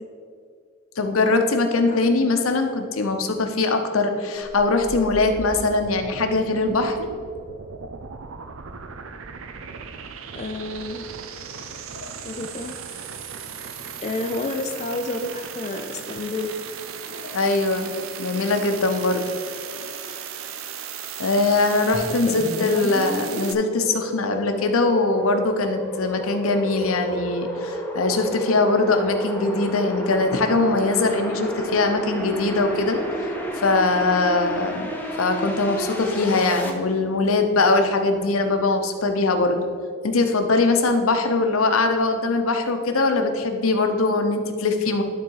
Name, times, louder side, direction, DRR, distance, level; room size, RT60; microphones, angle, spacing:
voice 1, 1.0-7.0 11.9-12.1 17.1-17.9 18.2-19.2 19.6-19.9 21.2-33.0 33.5-34.9 35.2-39.6 40.0-45.0, left 3 dB, 85° left, 6 dB, 0.8 m, -22 dB
voice 2, 1.9-2.4 10.3-11.1 12.2-12.7 14.0-16.5 22.3-22.9 34.6-34.9, left 2 dB, 30° left, 5 dB, 0.4 m, -30 dB
sound 1, 4.4-23.5, right 6 dB, 75° right, 0.6 m, -37 dB
sound 2, 21.9-36.7, equal, 10° left, 0.7 m, -31 dB
12.0 x 4.0 x 4.7 m, 2.1 s
head